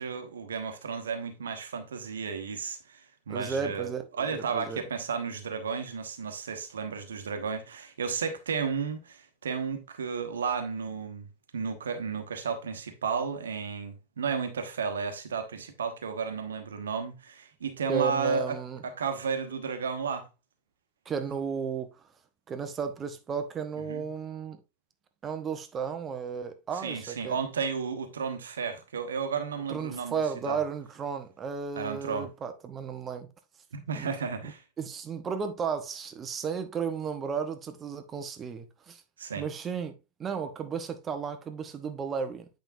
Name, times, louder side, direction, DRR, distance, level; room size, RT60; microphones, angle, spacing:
voice 1, 0.0-3.9 4.2-11.3 11.5-18.6 18.8-20.3 23.8-24.0 26.8-30.2 30.5-30.6 31.8-32.3 33.7-34.6 39.2-39.5, right 5 dB, 65° right, 1.2 m, -33 dB
voice 2, 3.3-4.8 17.9-18.8 21.1-21.9 22.5-24.6 25.2-27.4 29.7-33.3 34.0-34.1 34.8-39.0 39.4-39.9 40.2-42.5, right 6 dB, 25° right, 0.9 m, -34 dB
9.0 x 5.2 x 2.6 m
figure-of-eight pair, 90°, 0 cm